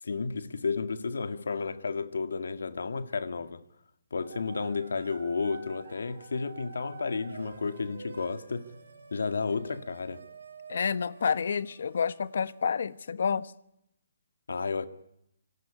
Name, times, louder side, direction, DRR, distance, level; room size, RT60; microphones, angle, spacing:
voice 1, 0.0-3.6 4.1-8.7 9.1-10.2 14.5-14.9, left 4 dB, 85° left, 1.9 m, -32 dB
sound 1, 4.2-13.1, right 4 dB, 85° right, 6.3 m, -49 dB
voice 2, 10.7-13.5, left 6 dB, 65° left, 1.2 m, -29 dB
25.5 x 19.0 x 9.9 m
hypercardioid pair, 160°, 0 cm